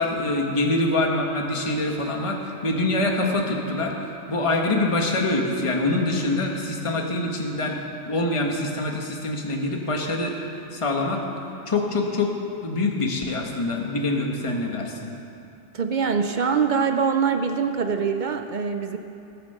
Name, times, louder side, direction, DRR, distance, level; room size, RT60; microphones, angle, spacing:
voice 1, 0.0-3.9 4.3-7.8 8.1-10.3 10.7-11.2 11.7-12.3 12.6-15.1, left 2 dB, 25° left, 1 dB, 1.2 m, -25 dB
voice 2, 15.7-19.0, right 6 dB, 60° right, 7 dB, 0.5 m, -23 dB
17.0 x 7.6 x 6.7 m, 2.7 s
omnidirectional pair, 1.4 m